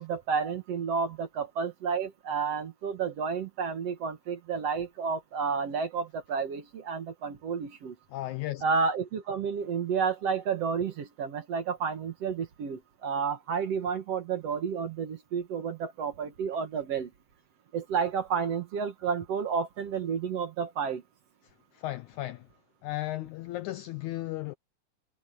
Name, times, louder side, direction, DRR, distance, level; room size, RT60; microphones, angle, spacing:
voice 1, 0.0-8.0 8.6-17.1 17.7-21.0, right 6 dB, 55° right, 2.1 m, -31 dB
voice 2, 8.1-8.6 21.7-22.5 22.8-24.5, left 16 dB, 80° left, 1.7 m, -35 dB
omnidirectional pair, 4.0 m